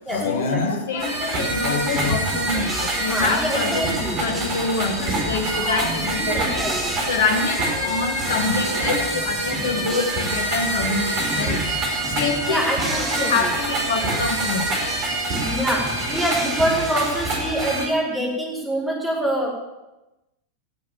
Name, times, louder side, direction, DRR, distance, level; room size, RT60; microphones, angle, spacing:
voice 1, 0.1-6.8 7.1-11.7 12.1-12.7 12.9-14.8, left 4 dB, 60° left, 7 dB, 1.4 m, -26 dB
sound 1, 1.0-17.9, right 2 dB, 40° right, 4.8 m, -26 dB
sound 2, 1.9-17.7, right 2 dB, 20° right, 3.0 m, -35 dB
voice 2, 3.0-4.2 6.1-6.9 12.5-13.5 15.4-19.5, right 1 dB, 5° right, -5 dB, 5.0 m, -25 dB
16.5 x 7.5 x 7.3 m, 0.99 s
figure-of-eight pair, 90°, 0 cm